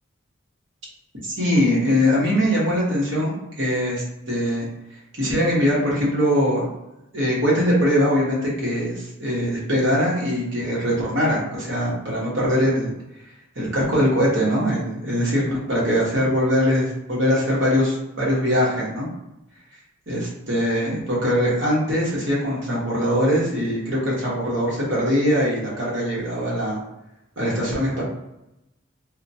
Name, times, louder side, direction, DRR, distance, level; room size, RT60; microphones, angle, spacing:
voice 1, 1.2-4.7 5.1-6.7 7.1-12.9 13.5-19.1 20.1-26.8 27.4-28.0, equal, 60° right, -6 dB, 1.1 m, -22 dB
2.8 x 2.2 x 2.7 m, 0.88 s
head